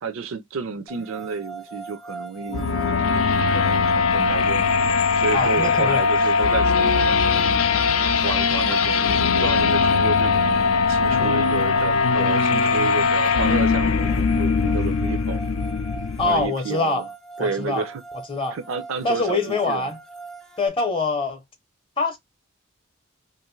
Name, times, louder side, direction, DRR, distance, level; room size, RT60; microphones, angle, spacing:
voice 1, 0.0-7.9 8.2-15.4 16.2-17.0 17.4-18.0 18.5-19.9, right 5 dB, 75° right, 0.5 m, -31 dB
sound 1, 0.9-20.7, right 4 dB, ahead, 0.3 m, -40 dB
sound 2, 2.5-16.5, left 5 dB, 80° left, 0.4 m, -20 dB
voice 2, 5.3-6.0 16.2-17.1 17.4-17.9 18.3-18.6 19.0-20.0 20.6-21.4 22.0-22.2, left 3 dB, 25° left, 0.7 m, -24 dB
2.5 x 2.5 x 3.0 m
head